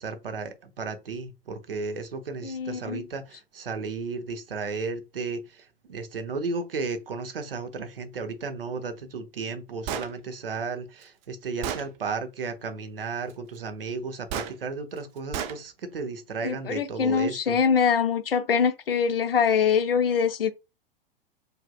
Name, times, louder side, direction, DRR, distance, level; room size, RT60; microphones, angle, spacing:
voice 1, 0.0-17.6, right 4 dB, 70° right, 0.9 m, -34 dB
voice 2, 2.4-3.1 16.4-20.5, left 6 dB, 75° left, 0.6 m, -24 dB
Gunshot gunfire, 9.9-10.1 11.0-11.1 11.6-11.9 14.3-14.5 15.3-15.6, right 8 dB, 25° right, 0.4 m, -31 dB
4.8 x 2.7 x 2.3 m
figure-of-eight pair, 100°, 29 cm